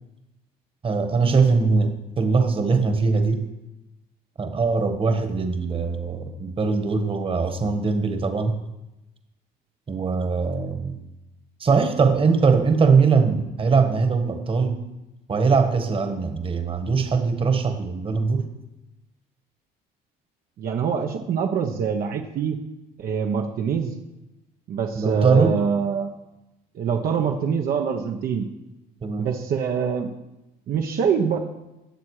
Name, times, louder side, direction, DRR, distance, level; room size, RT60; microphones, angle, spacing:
voice 1, 0.8-3.4 4.4-8.6 9.9-11.0 11.6-14.8 15.3-18.5 24.9-25.6 29.0-29.3, right 4 dB, 30° right, 7 dB, 1.6 m, -21 dB
voice 2, 20.6-22.6 23.0-23.9 24.7-26.1 26.7-28.5 29.2-30.1 30.7-31.4, right 6 dB, 60° right, 2 dB, 1.1 m, -24 dB
19.0 x 7.4 x 4.9 m, 0.96 s
cardioid pair, 110°, 17 cm